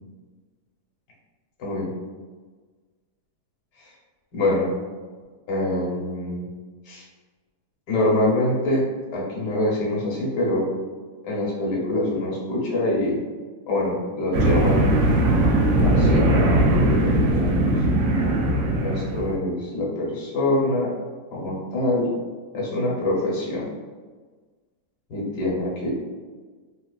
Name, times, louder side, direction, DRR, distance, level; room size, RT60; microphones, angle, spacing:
voice 1, 1.6-1.9 3.8-3.9 4.3-4.7 5.5-6.5 6.8-7.0 7.9-10.7 11.2-13.2 13.7-14.8 15.8-16.3 17.0-17.7 18.8-20.9 21.3-22.1 22.5-23.7 25.1-25.9, left 1 dB, 80° left, -4 dB, 1.5 m, -25 dB
sound 1, 14.3-19.4, right 1 dB, 75° right, 0.7 m, -19 dB
3.9 x 2.4 x 2.3 m, 1.4 s
omnidirectional pair, 1.8 m